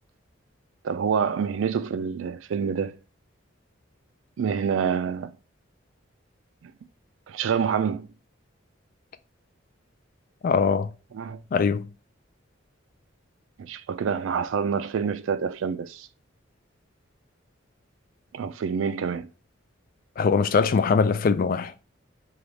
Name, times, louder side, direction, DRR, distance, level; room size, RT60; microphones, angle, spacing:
voice 1, 0.8-3.0 4.4-5.4 6.6-6.7 7.3-8.1 11.1-11.4 13.6-16.1 18.3-19.3, right 6 dB, 75° right, 0.3 m, -27 dB
voice 2, 10.4-10.9 11.5-11.9 20.2-21.7, left 5 dB, 45° left, 0.3 m, -22 dB
4.0 x 2.3 x 3.2 m
head